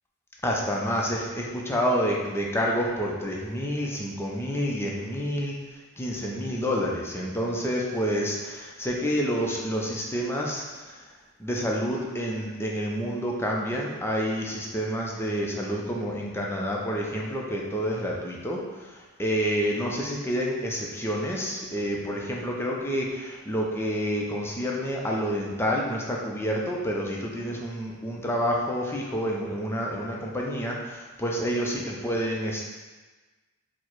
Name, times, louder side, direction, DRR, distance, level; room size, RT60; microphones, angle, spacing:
voice 1, 0.4-5.6 6.0-11.0 11.4-32.6, equal, 10° left, -2 dB, 0.5 m, -28 dB
4.5 x 2.1 x 4.4 m, 1.3 s
head